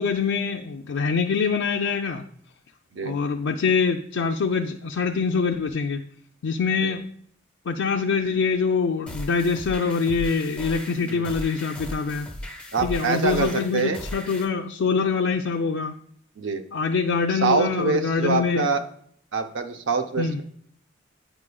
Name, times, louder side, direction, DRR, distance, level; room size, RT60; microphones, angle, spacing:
voice 1, 0.0-2.2 3.0-6.0 6.4-7.0 7.7-12.3 12.8-15.9 16.7-18.7 20.2-20.4, left 5 dB, 80° left, 3 dB, 0.4 m, -24 dB
sound 1, 9.1-14.4, left 1 dB, 5° left, 0.6 m, -37 dB
voice 2, 12.7-14.0 16.4-16.6 17.3-18.8 19.3-20.4, right 4 dB, 75° right, 7 dB, 0.6 m, -25 dB
9.1 x 4.8 x 2.3 m, 0.63 s
head